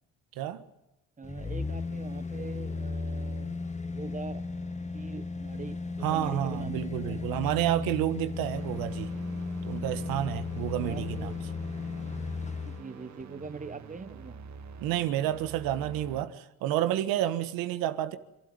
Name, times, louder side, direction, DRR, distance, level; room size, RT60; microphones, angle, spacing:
sound 1, 1.2-12.8 13.2-13.3, left 4 dB, 20° left, 1.5 m, -35 dB
voice 1, 1.2-4.4 4.9-7.4 10.8-11.4 12.6-14.4, right 4 dB, 25° right, 1.4 m, -43 dB
voice 2, 6.0-9.1 9.6-11.3 14.8-18.2, right 12 dB, 85° right, 1.5 m, -30 dB
sound 2, 8.5-16.2, right 6 dB, 55° right, 2.0 m, -47 dB
27.0 x 12.5 x 9.6 m
supercardioid pair, 75°, 34 cm